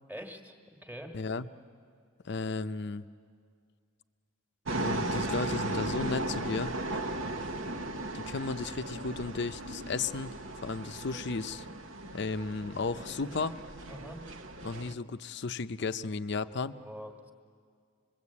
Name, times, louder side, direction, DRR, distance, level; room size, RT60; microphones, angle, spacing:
voice 1, 0.1-1.1 13.9-14.2 16.8-17.3, equal, 10° right, 3 dB, 1.6 m, -44 dB
voice 2, 1.1-1.5 2.2-3.0 4.8-6.7 8.1-10.3 10.6-11.6 12.1-13.6 14.6-16.8, left 4 dB, 55° left, 12 dB, 0.6 m, -34 dB
sound 1, 4.7-14.9, right 2 dB, 70° right, 1.0 m, -36 dB
26.0 x 21.5 x 8.4 m, 2.1 s
head